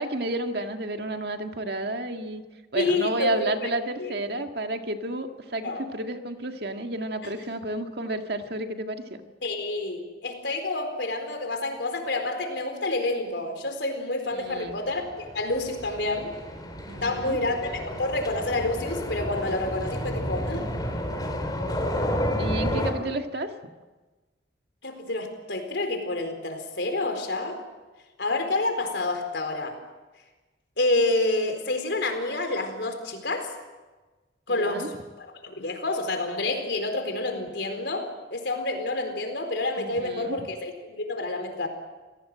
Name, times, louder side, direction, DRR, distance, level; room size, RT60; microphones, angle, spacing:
voice 1, 0.0-2.4 2.7-9.2 14.3-14.8 16.9-17.4 22.4-23.5 34.6-34.9 39.8-40.4, right 1 dB, 60° right, 5 dB, 2.0 m, -31 dB
voice 2, 2.8-3.7 4.0-4.1 5.6-5.8 7.2-7.3 9.4-16.3 17.0-20.7 24.8-27.6 28.2-29.8 30.8-33.5 34.5-34.9 35.2-41.7, left 2 dB, 70° left, 6 dB, 4.3 m, -28 dB
sound 1, 15.0-22.9, equal, 20° left, 3.2 m, -31 dB
27.5 x 18.0 x 7.8 m, 1.2 s
head